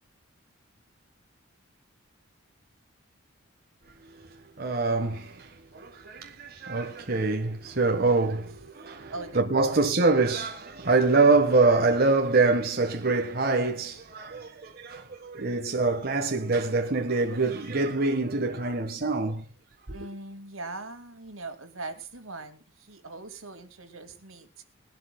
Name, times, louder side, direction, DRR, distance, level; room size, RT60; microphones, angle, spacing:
voice 1, 4.2-19.4 19.9-20.0, right 3 dB, 45° right, 1.4 m, -25 dB
voice 2, 9.1-9.8 19.9-24.6, right 3 dB, 80° right, 2.3 m, -41 dB
21.5 x 12.5 x 2.3 m
head